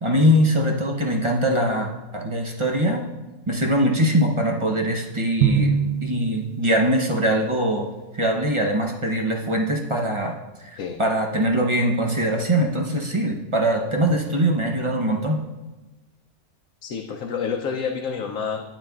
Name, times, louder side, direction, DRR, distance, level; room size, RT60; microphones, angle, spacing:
voice 1, 0.0-3.1 3.5-5.7 6.0-7.9 8.1-15.4, equal, 35° right, 1 dB, 0.5 m, -22 dB
Drum, 5.4-7.1, right 6 dB, 75° right, 1.0 m, -23 dB
voice 2, 16.8-18.6, left 6 dB, 80° left, 2 dB, 1.0 m, -28 dB
9.5 x 8.9 x 2.3 m, 1.1 s
omnidirectional pair, 1.5 m